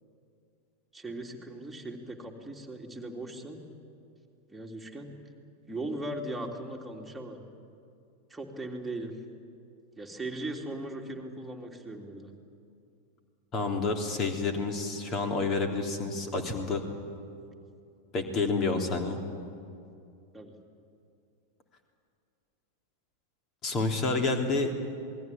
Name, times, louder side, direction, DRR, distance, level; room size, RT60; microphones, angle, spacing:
voice 1, 0.9-3.6 4.5-5.1 5.7-7.4 8.3-9.1 10.0-12.3 20.3-20.5, right 1 dB, 5° right, -1 dB, 3.2 m, -38 dB
voice 2, 13.5-16.8 18.1-19.2 23.6-24.7, left 3 dB, 30° left, 4 dB, 3.3 m, -29 dB
27.5 x 20.5 x 8.7 m, 2.5 s
figure-of-eight pair, 90°, 0 cm